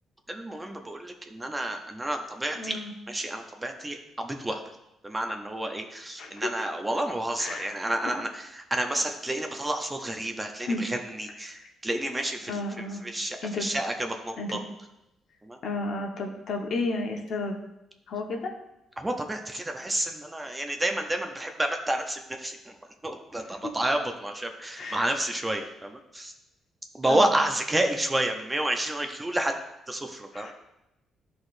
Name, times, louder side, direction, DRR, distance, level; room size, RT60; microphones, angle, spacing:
voice 1, 0.3-2.8 3.1-4.6 5.0-14.6 15.4-15.6 19.0-22.7 23.0-26.3 26.9-29.6 29.9-30.5, right 1 dB, 15° right, 4 dB, 0.7 m, -30 dB
voice 2, 2.5-2.9 6.2-6.5 7.4-7.7 10.7-10.8 11.5-11.6 12.5-13.1 13.4-13.7 14.4-14.6 15.6-17.6 18.1-18.5 23.4-23.7 24.8-25.0 27.1-27.3 30.3-30.5, left 2 dB, 65° left, 0 dB, 1.2 m, -32 dB
12.0 x 4.2 x 2.6 m, 0.90 s
cardioid pair, 90°, 0 cm